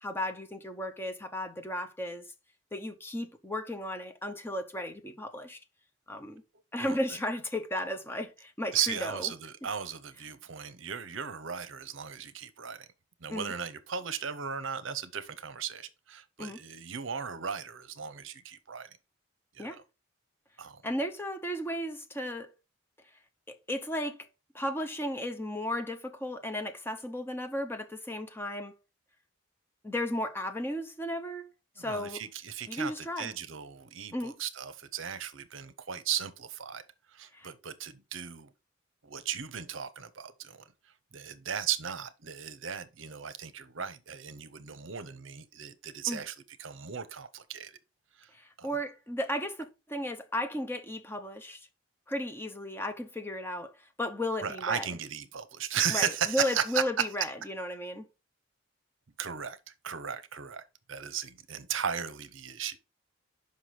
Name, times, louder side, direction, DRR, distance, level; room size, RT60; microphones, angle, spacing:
voice 1, 0.0-2.3 2.7-5.6 6.1-6.4 6.7-9.3 13.3-13.5 16.4-16.6 19.6-19.8 20.8-22.5 23.5-24.3 24.5-28.7 29.8-31.5 31.8-32.2 32.7-33.3 34.1-34.4 37.3-37.5 46.1-46.2 48.3-51.7 52.1-54.9 55.9-58.1, left 1 dB, 10° left, 0.7 m, -35 dB
voice 2, 8.7-12.9 13.2-18.9 19.5-19.8 20.6-20.8 31.8-36.8 37.1-38.5 39.0-40.6 41.1-47.7 48.2-48.3 48.6-48.7 54.4-56.8 59.2-59.6 59.8-62.8, right 8 dB, 65° right, 0.7 m, -36 dB
5.9 x 5.5 x 4.8 m
head